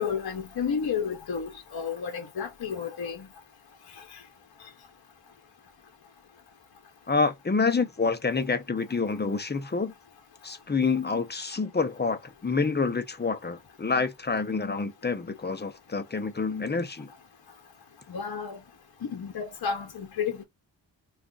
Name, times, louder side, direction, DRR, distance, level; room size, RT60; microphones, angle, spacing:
voice 1, 0.0-3.3 18.1-18.6 19.1-20.4, left 6 dB, 55° left, 0.8 m, -31 dB
voice 2, 7.1-9.9 10.4-17.1, left 4 dB, 25° left, 0.6 m, -27 dB
2.4 x 2.4 x 3.7 m
wide cardioid pair, 105°, 45 cm